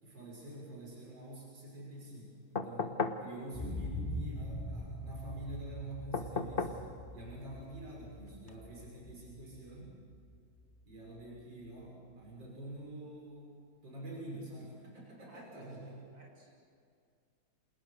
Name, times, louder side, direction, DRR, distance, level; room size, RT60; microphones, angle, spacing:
voice 1, 0.0-10.0 10.9-13.6 13.8-16.0, right 2 dB, 70° right, -3 dB, 7.0 m, -47 dB
sound 1, 2.6-3.3 6.1-6.8 8.5-8.6, left 4 dB, 30° left, 1.4 m, -35 dB
sound 2, 3.5-11.4 11.8-11.9, left 1 dB, 5° left, 4.9 m, -43 dB
voice 2, 15.3-16.5, right 1 dB, 85° right, -2 dB, 7.7 m, -56 dB
29.5 x 27.5 x 6.7 m, 2.3 s
omnidirectional pair, 2.1 m